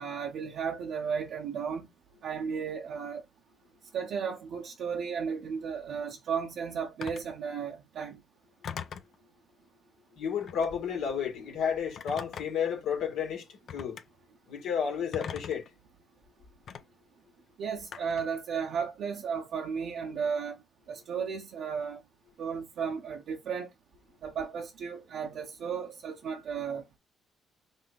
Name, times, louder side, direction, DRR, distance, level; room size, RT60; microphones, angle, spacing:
voice 1, 0.0-1.9 2.2-3.2 3.9-8.2 17.6-20.6 20.9-22.0 22.4-23.7 24.2-26.8, right 6 dB, 75° right, 0.9 m, -34 dB
Telephone, 7.0-7.3 8.6-9.1 10.4-10.8 12.0-12.7 13.7-14.0 15.1-15.7 16.7-16.8 17.9-18.3, left 7 dB, 60° left, 0.6 m, -40 dB
voice 2, 10.2-13.5 13.7-14.0 14.5-15.7, left 7 dB, 90° left, 1.9 m, -31 dB
5.4 x 2.7 x 3.5 m
cardioid pair, 90°, 0 cm